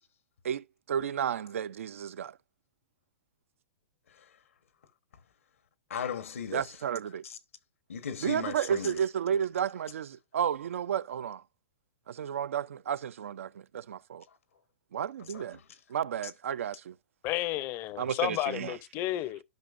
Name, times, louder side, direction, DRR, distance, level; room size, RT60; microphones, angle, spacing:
voice 1, 0.4-2.4 6.5-7.2 8.2-11.4 12.1-14.2 14.9-15.6 15.9-17.0 18.0-18.8, right 8 dB, 80° right, 0.4 m, -32 dB
voice 2, 4.1-4.4 5.9-6.8 7.2-7.4 7.9-9.0 14.3-14.4 15.2-15.8, left 7 dB, 85° left, 1.1 m, -38 dB
voice 3, 17.2-19.4, left 15 dB, 35° left, 0.5 m, -32 dB
13.0 x 5.3 x 2.5 m
hypercardioid pair, 135°, 7 cm